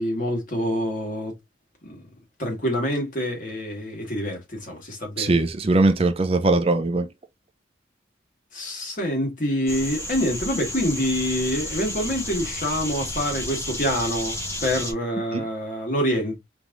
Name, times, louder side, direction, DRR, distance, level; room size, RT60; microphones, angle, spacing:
voice 1, 0.0-1.3 1.8-2.0 2.4-5.4 8.5-16.4, equal, 45° left, 1.8 m, -26 dB
voice 2, 5.2-7.1 15.3-15.4, right 2 dB, 30° right, 0.4 m, -20 dB
sound 1, 9.7-14.9, left 1 dB, 15° left, 1.0 m, -32 dB
4.6 x 3.4 x 2.5 m
head